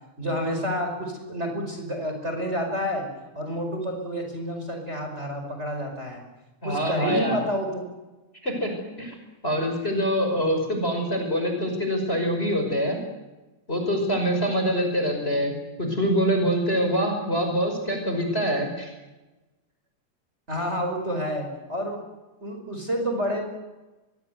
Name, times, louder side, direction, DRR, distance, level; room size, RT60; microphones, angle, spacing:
voice 1, 0.2-3.1 3.3-6.2 6.6-7.8 20.5-22.1 22.4-23.4, equal, 20° right, 3 dB, 5.4 m, -29 dB
voice 2, 6.6-7.4 8.4-8.7 9.0-9.1 9.4-13.0 13.7-15.5 15.8-18.9, equal, 20° left, 4 dB, 5.7 m, -25 dB
24.5 x 23.0 x 8.1 m, 1.1 s
omnidirectional pair, 3.4 m